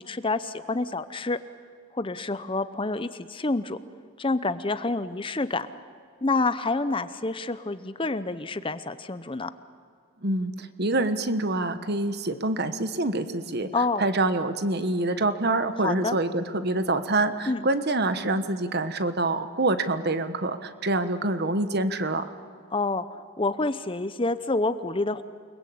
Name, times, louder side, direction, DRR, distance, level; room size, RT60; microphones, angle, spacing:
voice 1, 0.0-1.4 1.9-3.8 4.2-5.7 6.2-9.5 13.7-14.0 15.8-16.2 17.5-17.7 22.7-23.0 23.4-25.2, left 3 dB, 25° left, 13 dB, 0.7 m, -28 dB
voice 2, 10.2-13.7 14.0-22.3, right 2 dB, 50° right, 10 dB, 1.3 m, -26 dB
29.0 x 21.0 x 8.6 m, 2.2 s
head